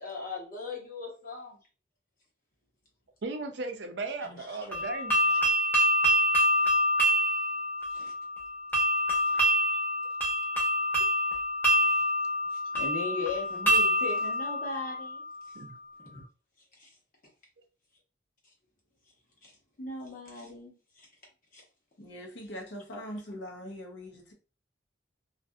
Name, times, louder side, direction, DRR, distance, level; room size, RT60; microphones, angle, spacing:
voice 1, 0.0-1.6 4.2-4.7 5.2-5.5 6.6-6.7 7.9-8.1 9.2-9.4 11.8-12.0 12.5-15.2 16.1-16.2 16.8-16.9 19.4-19.5 19.8-21.1 21.5-21.6, left 3 dB, 50° left, 0.9 m, -39 dB
voice 2, 3.2-5.1 15.5-15.8, right 3 dB, 65° right, 0.5 m, -36 dB
sound 1, 4.7-15.5, equal, 10° left, 0.8 m, -26 dB
voice 3, 22.0-24.3, equal, 70° left, 0.8 m, -42 dB
2.6 x 2.5 x 2.3 m
head